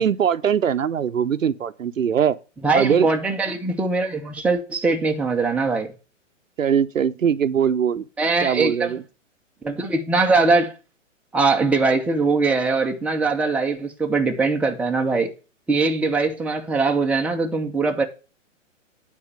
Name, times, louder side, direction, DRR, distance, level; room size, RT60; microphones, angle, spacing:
voice 1, 0.0-2.4 2.7-3.1 6.6-8.0 8.4-9.0, right 8 dB, 90° right, 0.8 m, -21 dB
voice 2, 2.6-5.9 8.2-9.0 9.6-10.7 11.3-15.3 15.7-18.0, right 3 dB, 5° right, 0.9 m, -21 dB
9.7 x 4.4 x 7.2 m
hypercardioid pair, 130°, 38 cm